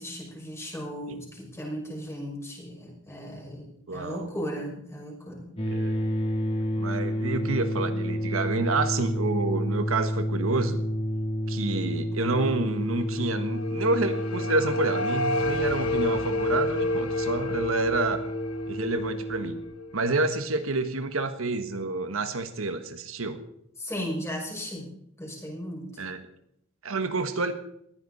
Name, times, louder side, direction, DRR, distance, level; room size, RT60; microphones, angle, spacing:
voice 1, 0.0-5.5 23.8-24.9 25.2-25.9, equal, 15° left, -2 dB, 6.0 m, -36 dB
voice 2, 3.9-4.3 5.7-6.0 6.8-10.8 11.5-18.2 18.7-19.6 19.9-23.4 26.0-26.3 26.8-27.5, right 3 dB, 75° right, 8 dB, 1.4 m, -28 dB
sound 1, 5.6-19.6, equal, 30° left, 3.2 m, -30 dB
sound 2, 13.1-20.2, left 2 dB, 85° left, 1.4 m, -30 dB
20.5 x 15.0 x 4.2 m, 0.75 s
head